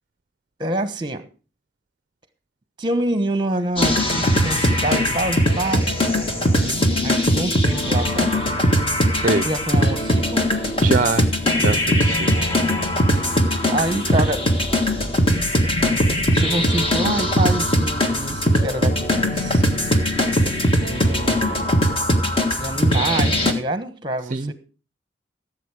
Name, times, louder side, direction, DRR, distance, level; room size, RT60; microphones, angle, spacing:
voice 1, 0.6-1.3 2.8-5.9 7.0-8.4 9.4-10.5 13.7-14.5 16.3-19.6 20.8-21.7 22.4-24.5, right 1 dB, 25° right, 11 dB, 1.2 m, -26 dB
sound 1, 3.8-23.5, equal, 30° left, 1.6 m, -20 dB
voice 2, 6.4-6.8 9.1-9.5 10.8-11.3 11.6-12.3 24.3-24.5, right 3 dB, 40° right, 12 dB, 0.5 m, -24 dB
16.0 x 7.6 x 4.9 m, 0.35 s
head